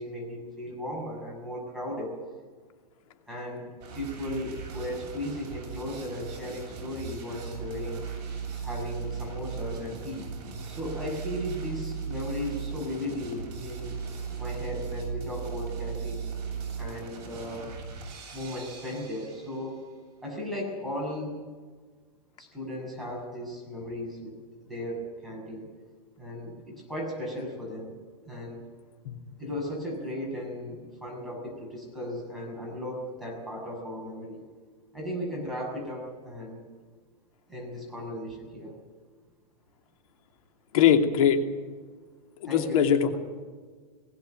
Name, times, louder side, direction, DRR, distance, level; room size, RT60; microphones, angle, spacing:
voice 1, 0.0-2.2 3.3-8.0 8.6-10.3 10.7-14.0 14.4-16.2 16.8-17.7 18.3-19.8 20.2-21.4 22.4-25.7 26.2-28.0 28.2-28.6 29.4-34.4 34.9-36.6 37.5-38.8 42.4-43.2, left 1 dB, ahead, -4 dB, 6.7 m, -36 dB
sound 1, 3.8-19.8, right 6 dB, 40° right, 7.8 m, -37 dB
voice 2, 40.7-41.4 42.4-43.2, left 8 dB, 60° left, 5 dB, 2.7 m, -21 dB
20.5 x 16.5 x 9.0 m, 1.5 s
supercardioid pair, 155°, 21 cm